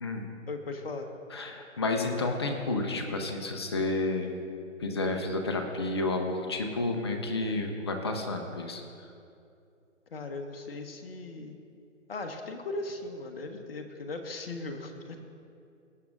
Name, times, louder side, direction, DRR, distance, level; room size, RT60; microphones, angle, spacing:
voice 1, 0.5-1.1 10.1-11.6 12.1-15.2, left 2 dB, 50° left, 5 dB, 1.2 m, -38 dB
voice 2, 1.3-4.3 4.8-8.8, left 2 dB, 20° left, 4 dB, 0.6 m, -31 dB
19.0 x 8.2 x 2.6 m, 2.6 s
figure-of-eight pair, 150°, 39 cm